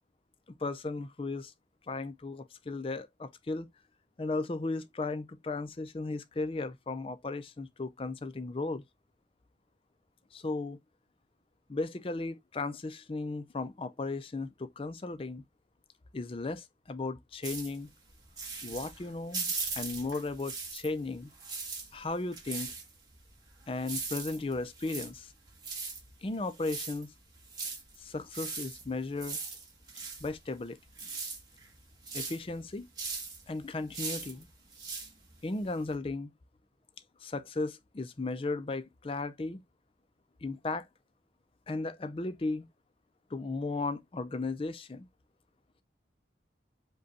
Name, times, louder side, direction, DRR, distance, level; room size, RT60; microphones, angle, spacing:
voice 1, 0.6-1.5 1.9-3.7 4.2-8.8 10.3-10.8 11.7-15.4 16.1-17.9 18.6-21.3 21.9-22.7 23.7-25.3 26.2-27.1 28.0-29.4 30.2-30.8 32.1-32.9 33.5-34.5 35.4-36.3 37.2-39.6 40.4-40.9 41.7-42.7 43.3-45.1, left 3 dB, 30° left, 0.4 m, -35 dB
sound 1, 17.4-21.0 21.3-35.9, right 4 dB, 20° right, 1.5 m, -40 dB
5.1 x 2.3 x 4.0 m
head